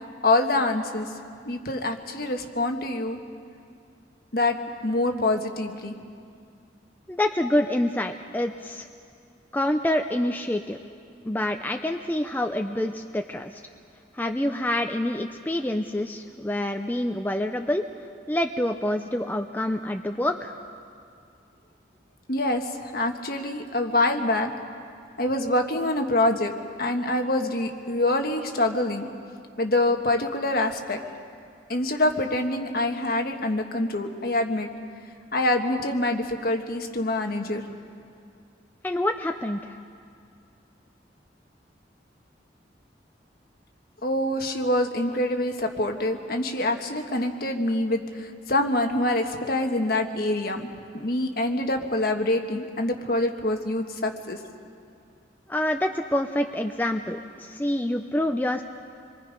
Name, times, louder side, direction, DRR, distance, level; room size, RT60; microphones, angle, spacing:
voice 1, 0.2-1.1 1.4-3.2 4.3-4.6 4.8-5.9 22.3-24.5 25.2-26.5 26.8-29.1 29.6-31.0 31.7-34.7 35.3-37.6 44.0-50.7 50.9-54.4, left 1 dB, 50° left, 4 dB, 1.5 m, -25 dB
voice 2, 7.1-8.9 9.5-10.8 11.2-13.6 14.1-17.9 18.3-20.5 38.8-39.8 55.5-58.6, left 1 dB, 10° left, 5 dB, 0.5 m, -27 dB
27.0 x 23.0 x 5.3 m, 2.3 s
head